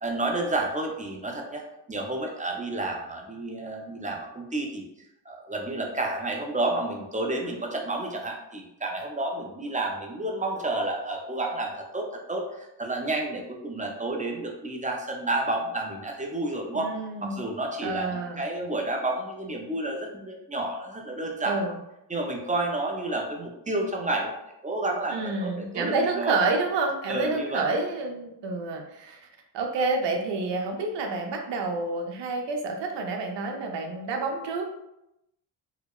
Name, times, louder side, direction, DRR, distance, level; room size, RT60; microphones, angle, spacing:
voice 1, 0.0-1.6 1.9-4.9 5.3-16.9 17.2-21.6 22.1-24.3 24.6-26.4 27.1-27.7, right 2 dB, 15° right, 1 dB, 0.4 m, -30 dB
voice 2, 16.7-17.4 17.8-18.4 21.4-21.7 25.1-29.3 29.5-34.6, right 3 dB, 65° right, 3 dB, 0.6 m, -29 dB
2.7 x 2.1 x 2.3 m, 0.87 s
supercardioid pair, 55°, 47 cm